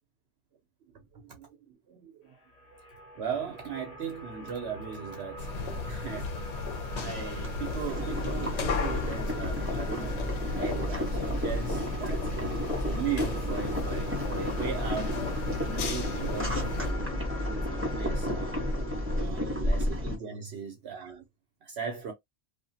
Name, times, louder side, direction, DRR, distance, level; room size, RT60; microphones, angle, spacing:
voice 1, 0.9-1.5 1.9-2.4 3.2-5.5 5.9-6.4 7.0-10.2 10.5-12.3 12.8-15.2 15.6-18.7 19.2-21.2 21.6-22.1, right 7 dB, 65° right, 0.8 m, -38 dB
sound 1, 2.4-19.2, left 2 dB, 40° left, 0.6 m, -43 dB
sound 2, 5.4-16.9, left 3 dB, 70° left, 1.0 m, -35 dB
Boiling, 7.4-20.1, left 1 dB, 10° right, 1.0 m, -32 dB
2.8 x 2.4 x 2.6 m
omnidirectional pair, 1.2 m